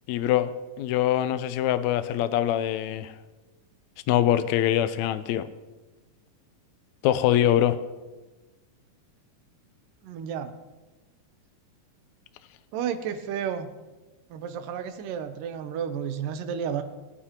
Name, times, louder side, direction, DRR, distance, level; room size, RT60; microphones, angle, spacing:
voice 1, 0.1-0.5 0.8-3.1 4.1-5.5 7.0-7.8, left 11 dB, 80° left, 11 dB, 1.7 m, -23 dB
voice 2, 10.0-10.5 12.7-13.7 14.3-16.8, right 8 dB, 85° right, 9 dB, 2.4 m, -32 dB
20.0 x 10.0 x 2.9 m, 1.2 s
omnidirectional pair, 3.8 m